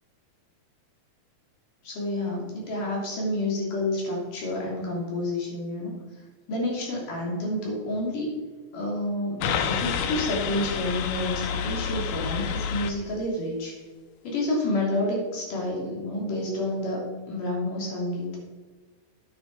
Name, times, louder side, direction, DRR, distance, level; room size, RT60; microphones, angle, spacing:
voice 1, 1.8-6.0 6.5-8.3 8.7-13.7 14.2-18.4, left 1 dB, 60° left, -3 dB, 4.3 m, -29 dB
sound 1, 9.4-12.9, left 7 dB, 85° left, 1.7 m, -29 dB
9.8 x 9.4 x 4.7 m, 1.3 s
omnidirectional pair, 4.3 m